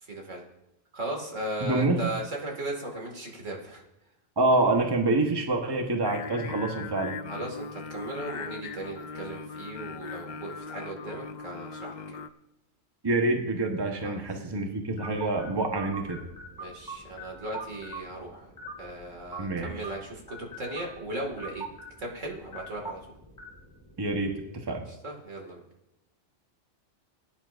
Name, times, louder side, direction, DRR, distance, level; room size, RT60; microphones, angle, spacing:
voice 1, 0.0-0.4 0.9-3.8 7.3-12.2 14.0-14.2 16.6-18.5 18.8-21.7 22.0-23.0 24.9-25.6, right 1 dB, 70° right, 0 dB, 2.5 m, -37 dB
voice 2, 1.6-2.1 4.4-7.2 13.0-16.2 19.4-19.7 24.0-24.3 24.7-24.8, right 2 dB, 20° right, 3 dB, 1.1 m, -26 dB
Singing, 6.0-12.3, left 5 dB, 80° left, 0.4 m, -39 dB
sound 1, 15.0-24.5, right 2 dB, 15° left, 2.5 m, -44 dB
20.5 x 9.9 x 2.6 m, 0.88 s
omnidirectional pair, 1.3 m